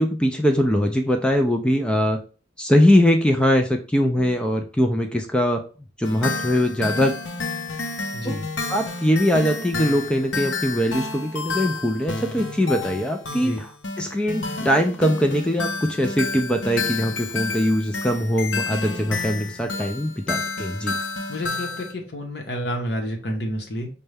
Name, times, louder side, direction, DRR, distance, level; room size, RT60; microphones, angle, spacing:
voice 1, 0.0-2.2 2.6-5.6 6.0-7.1 8.2-8.4 8.7-13.7 14.0-21.0, equal, 5° left, 4 dB, 0.3 m, -21 dB
sound 1, 6.0-21.9, left 3 dB, 75° left, 0.6 m, -30 dB
voice 2, 8.1-8.5 13.3-13.6 21.3-23.9, equal, 60° left, 2 dB, 0.9 m, -29 dB
5.2 x 2.2 x 3.3 m, 0.37 s
head